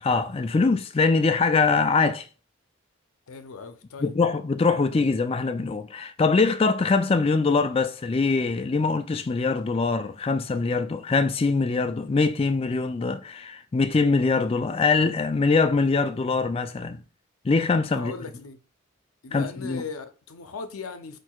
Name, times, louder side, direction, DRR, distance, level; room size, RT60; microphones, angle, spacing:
voice 1, 0.0-2.3 4.0-17.0 17.4-18.1 19.3-19.8, left 4 dB, 25° left, 0.3 m, -23 dB
voice 2, 3.3-4.1 17.9-18.6 19.2-21.2, left 4 dB, 85° left, 0.6 m, -38 dB
4.5 x 4.5 x 2.3 m
head